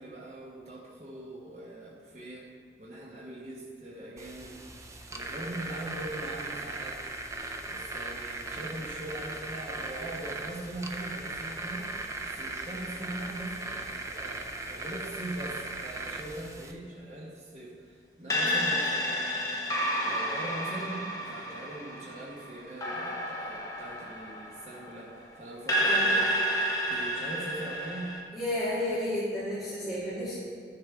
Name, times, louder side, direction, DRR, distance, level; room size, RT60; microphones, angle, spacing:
voice 1, 0.0-2.5 2.8-4.6 5.1-7.3 7.7-11.9 12.3-19.6 20.0-26.3 26.9-28.2, right 1 dB, 40° right, -5 dB, 1.2 m, -41 dB
sound 1, 4.2-16.7, right 2 dB, 15° right, 0.5 m, -38 dB
sound 2, 18.3-25.1 25.7-28.2, equal, 20° left, 1.1 m, -30 dB
voice 2, 25.9-26.2 28.3-30.4, left 1 dB, ahead, -12 dB, 1.8 m, -32 dB
12.0 x 6.8 x 3.6 m, 2.1 s
head